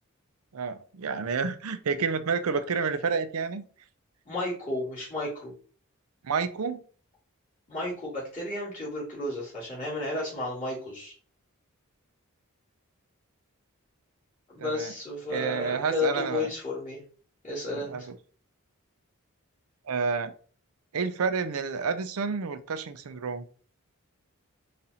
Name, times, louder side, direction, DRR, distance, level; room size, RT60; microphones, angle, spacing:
voice 1, 0.5-3.6 6.2-6.8 14.6-14.9 15.3-16.5 17.7-18.2 19.9-20.3 20.9-23.4, right 5 dB, 80° right, 11 dB, 0.5 m, -29 dB
voice 2, 4.3-5.5 7.7-11.1 14.5-17.0 17.4-18.1, left 2 dB, 30° left, -11 dB, 2.3 m, -32 dB
4.2 x 2.5 x 4.1 m, 0.41 s
head